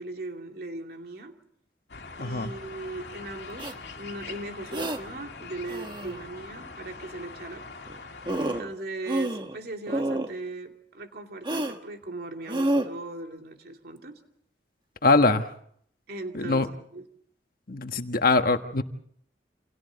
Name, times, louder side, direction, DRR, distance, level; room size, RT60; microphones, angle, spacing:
voice 1, 0.0-1.4 2.2-7.7 8.4-14.2 16.1-16.7 16.9-17.1, right 2 dB, 60° right, 3 dB, 2.7 m, -38 dB
sound 1, 1.9-8.6, left 4 dB, 80° left, 2.2 m, -43 dB
voice 2, 2.2-2.5 15.0-15.5 16.3-16.7 17.7-18.8, left 3 dB, 55° left, 7 dB, 1.5 m, -22 dB
sound 2, 3.6-3.7 4.7-5.0 5.7-6.2 7.9-8.0 8.3-8.7 9.1-9.6 9.9-10.3 11.4-11.8 12.5-12.9, right 1 dB, 25° right, 1.4 m, -28 dB
28.5 x 27.0 x 4.1 m, 0.65 s
head